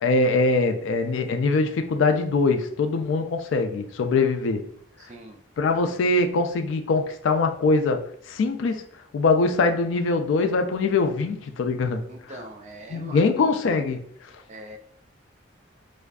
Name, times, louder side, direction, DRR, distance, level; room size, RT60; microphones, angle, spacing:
voice 1, 0.0-4.6 5.6-8.8 9.1-12.0 12.9-14.0, left 3 dB, 75° left, 0.3 m, -22 dB
voice 2, 5.0-5.4 12.1-13.5 14.5-14.8, right 1 dB, 35° right, 0.3 m, -41 dB
2.5 x 2.3 x 2.2 m
head